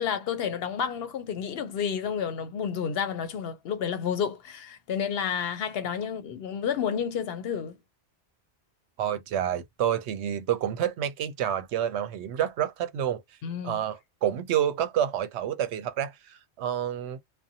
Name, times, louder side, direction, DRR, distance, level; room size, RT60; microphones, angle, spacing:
voice 1, 0.0-7.8 13.4-13.8, left 7 dB, 65° left, 0.7 m, -30 dB
voice 2, 9.0-13.2 13.6-17.2, right 10 dB, 80° right, 0.8 m, -28 dB
2.5 x 2.1 x 2.7 m
omnidirectional pair, 1.1 m